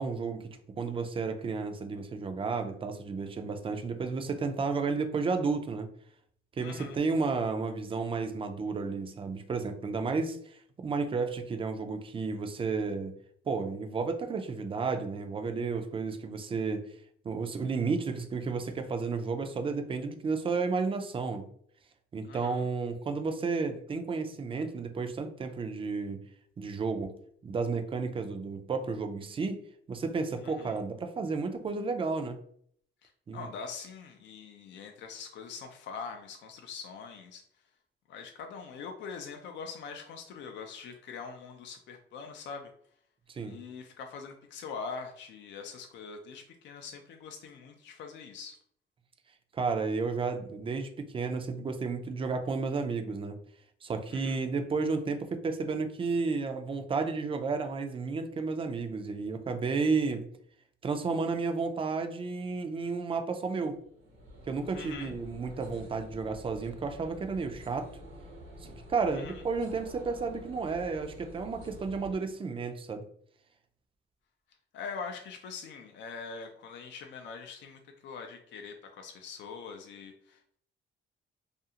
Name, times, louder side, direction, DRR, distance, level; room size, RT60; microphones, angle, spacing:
voice 1, 0.0-5.9 6.6-13.1 13.5-16.8 17.2-21.5 22.1-26.2 26.6-27.1 27.4-29.6 29.9-32.4 33.3-33.5 43.3-43.6 49.5-53.4 53.8-60.2 60.8-63.8 64.5-67.9 68.9-73.0, right 4 dB, 25° right, 7 dB, 0.4 m, -32 dB
voice 2, 6.6-7.0 22.3-22.6 30.4-30.7 33.0-37.4 38.1-42.7 43.4-48.6 54.1-54.5 64.7-65.1 69.1-69.4 74.7-80.6, left 5 dB, 65° left, 4 dB, 0.4 m, -43 dB
sound 1, 63.4-72.2, equal, 80° right, 0.9 m, -48 dB
2.5 x 2.3 x 2.8 m, 0.64 s
cardioid pair, 90°, 20 cm